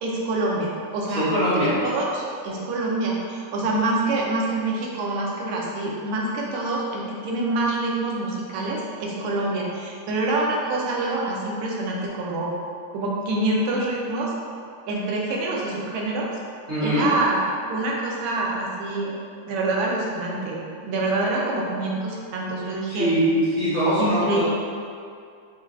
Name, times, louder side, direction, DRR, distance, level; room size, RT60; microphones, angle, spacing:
voice 1, 0.0-12.5 12.9-14.3 14.9-16.3 16.8-17.4 17.7-19.1 19.4-23.1 24.0-24.4, right 2 dB, 90° right, -3 dB, 1.4 m, -26 dB
voice 2, 1.1-1.8 16.7-17.1 22.9-24.4, equal, 60° right, -11 dB, 0.7 m, -22 dB
4.5 x 2.3 x 2.4 m, 2.3 s
omnidirectional pair, 2.1 m